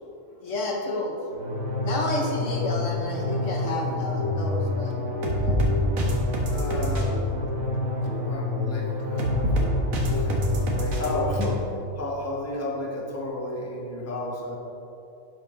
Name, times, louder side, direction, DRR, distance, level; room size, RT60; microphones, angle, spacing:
voice 1, 0.4-1.2 1.8-5.0 5.4-5.6 8.0-8.1, left 2 dB, 60° left, 0 dB, 1.4 m, -30 dB
sound 1, 1.3-11.5, left 1 dB, 75° right, 1.7 m, -26 dB
voice 2, 6.5-7.7 8.3-9.5 10.1-10.4 10.8-11.6 11.9-14.6, left 1 dB, 10° left, -2 dB, 1.1 m, -33 dB
10.5 x 7.3 x 3.8 m, 2.8 s
omnidirectional pair, 1.5 m